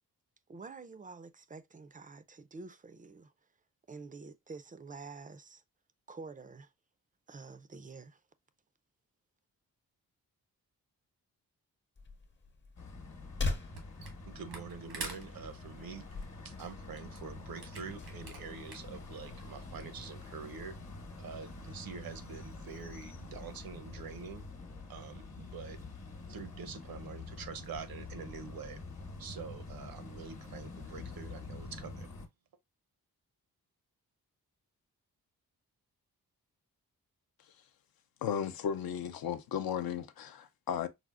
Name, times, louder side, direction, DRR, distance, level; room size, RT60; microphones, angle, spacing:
voice 1, 0.5-3.3 3.9-5.6 6.1-6.7 7.3-8.2, right 4 dB, 25° right, 0.3 m, -48 dB
sound 1, 11.9-19.4, left 3 dB, 30° left, 0.7 m, -43 dB
sound 2, 12.8-32.3, left 3 dB, 45° left, 1.0 m, -47 dB
Camera, 13.7-14.2 14.5-19.0, right 4 dB, 85° right, 1.2 m, -46 dB
voice 2, 14.3-16.1 16.4-20.8 21.2-24.5 24.9-25.8 26.3-28.8 29.2-32.1, right 6 dB, 65° right, 0.6 m, -46 dB
voice 3, 38.2-40.9, left 8 dB, 70° left, 0.5 m, -35 dB
4.8 x 2.0 x 2.2 m
cardioid pair, 50°, 38 cm